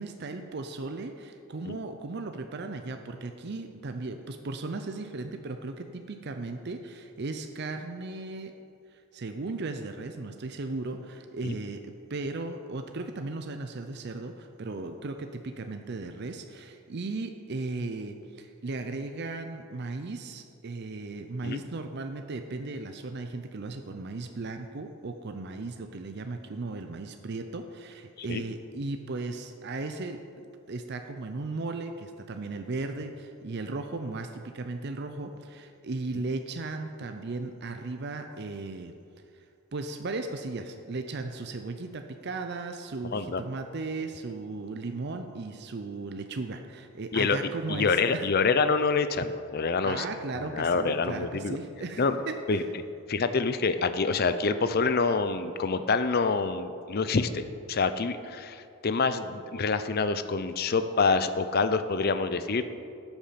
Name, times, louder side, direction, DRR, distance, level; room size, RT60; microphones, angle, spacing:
voice 1, 0.0-8.5 8.9-30.2 30.7-39.0 39.3-39.4 39.7-48.3 49.8-52.7, right 3 dB, 50° right, 6 dB, 0.5 m, -36 dB
voice 2, 43.1-43.4 47.1-47.4 47.7-50.1 50.3-51.6 52.0-52.2 52.5-52.6 53.1-62.6, left 4 dB, 45° left, 11 dB, 0.5 m, -26 dB
12.5 x 7.1 x 5.8 m, 2.4 s
head